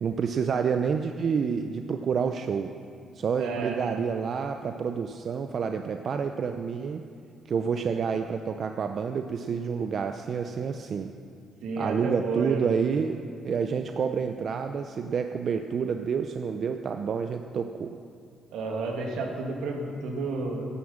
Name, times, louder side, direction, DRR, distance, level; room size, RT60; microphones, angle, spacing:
voice 1, 0.0-2.7 3.1-7.0 7.5-11.1 11.8-13.2 13.4-18.0, right 6 dB, 55° right, 6 dB, 0.6 m, -28 dB
voice 2, 3.4-4.0 11.6-12.7 18.5-20.7, right 3 dB, 85° right, 1 dB, 2.3 m, -31 dB
11.5 x 9.7 x 7.3 m, 2.4 s
cardioid pair, 90°, 0 cm